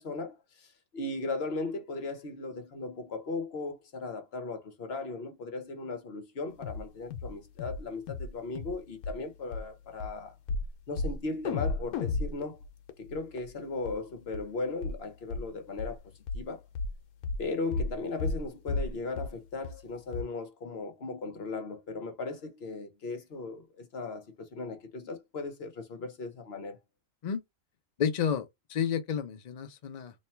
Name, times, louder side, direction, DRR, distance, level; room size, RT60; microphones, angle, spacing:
voice 1, 0.0-10.4 10.9-12.6 13.0-16.0 16.3-16.6 17.4-26.8, left 3 dB, 50° left, 1.1 m, -37 dB
sound 1, 6.6-6.8 7.1-7.3 7.6-7.8 8.1-8.3 8.6-8.8 9.0-9.2 9.5-9.6 10.0-10.1 10.5-10.7 11.0-11.2 11.4-13.5 13.8-13.9 14.3-14.4 14.8-15.0 15.3-15.4 15.8-15.9 16.3-16.4 16.7-16.9 17.2-17.4 17.7-17.9 18.2-18.4 18.7-18.9 19.2-19.3 19.6-19.7 20.1-20.2, left 3 dB, 90° left, 1.2 m, -33 dB
voice 2, 28.0-30.1, left 7 dB, 75° left, 0.3 m, -31 dB
3.2 x 2.3 x 4.3 m
omnidirectional pair, 1.5 m